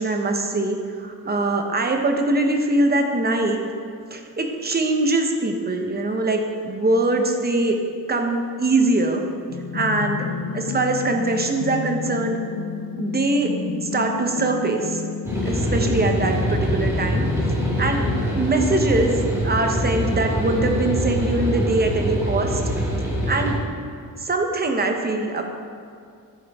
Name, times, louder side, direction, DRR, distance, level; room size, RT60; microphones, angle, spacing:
voice 1, 0.0-3.6 4.1-7.8 8.1-9.2 9.7-10.2 10.5-12.4 13.0-13.5 13.8-15.0 15.4-17.3 17.8-18.0 18.3-22.6 23.3-23.6 24.2-25.4, right 2 dB, 25° right, 3 dB, 0.8 m, -22 dB
sound 1, 9.5-18.3, left 6 dB, 65° left, 0.7 m, -30 dB
sound 2, 15.2-23.5, equal, 10° right, 1.8 m, -24 dB
11.0 x 8.9 x 3.6 m, 2.3 s
wide cardioid pair, 175°, 36 cm